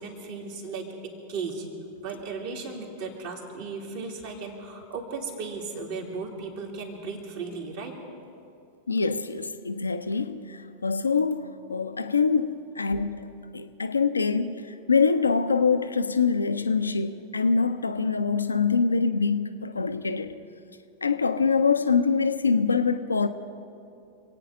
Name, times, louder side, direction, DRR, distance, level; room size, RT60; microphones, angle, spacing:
voice 1, 0.0-1.7 2.0-7.9, right 4 dB, 50° right, 3.0 m, -36 dB
voice 2, 8.9-14.5 14.9-20.4 21.0-23.3, left 5 dB, 80° left, 0.7 m, -24 dB
27.0 x 9.2 x 5.0 m
figure-of-eight pair, 90°, 0 cm